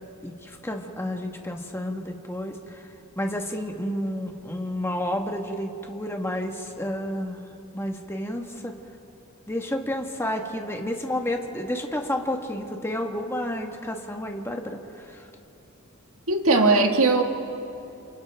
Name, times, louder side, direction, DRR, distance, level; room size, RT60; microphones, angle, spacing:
voice 1, 0.2-2.9 3.1-7.4 7.7-8.7 9.5-15.3, left 1 dB, 10° left, 2 dB, 1.3 m, -30 dB
voice 2, 16.3-17.2, right 3 dB, 75° right, 3 dB, 1.8 m, -19 dB
29.0 x 28.0 x 3.5 m, 2.8 s
head